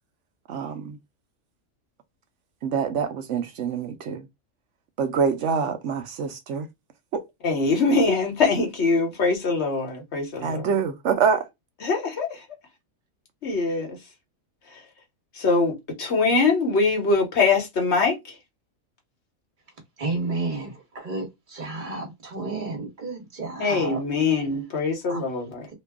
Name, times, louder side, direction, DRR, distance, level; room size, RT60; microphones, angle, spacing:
voice 1, 0.5-1.0 2.6-4.3 5.0-6.7 7.1-7.2 10.4-11.5, right 6 dB, 65° right, 0.8 m, -25 dB
voice 2, 7.4-10.6 11.8-12.4 13.4-14.0 15.4-18.2 23.6-25.7, left 4 dB, 50° left, 1.3 m, -23 dB
voice 3, 20.0-24.0 25.1-25.2, right 3 dB, 35° right, 1.4 m, -31 dB
3.0 x 2.3 x 3.4 m
omnidirectional pair, 1.5 m